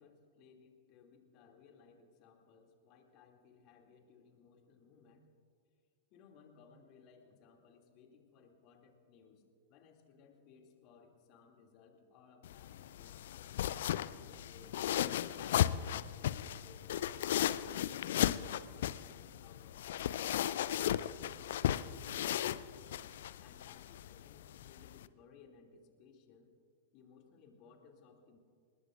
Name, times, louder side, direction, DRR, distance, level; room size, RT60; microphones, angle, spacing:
voice 1, 0.0-5.3 6.1-14.9 15.4-16.9 17.8-19.8 20.4-23.1 23.4-26.5 26.9-28.4, left 6 dB, 40° left, 2 dB, 2.6 m, -62 dB
sound 1, 12.4-25.1, left 11 dB, 55° left, 0.5 m, -36 dB
29.0 x 19.5 x 2.6 m, 2.1 s
figure-of-eight pair, 95°, 0 cm